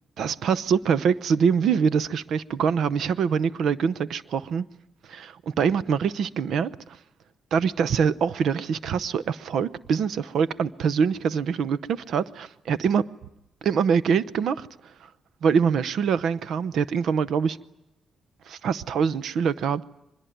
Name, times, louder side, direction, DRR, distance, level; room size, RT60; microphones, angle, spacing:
voice 1, 0.2-4.7 5.1-5.3 5.6-6.7 7.5-13.0 13.6-14.7 15.4-17.6 18.5-19.8, right 6 dB, 75° right, 0.8 m, -24 dB
24.0 x 21.0 x 9.3 m
cardioid pair, 70°, 0 cm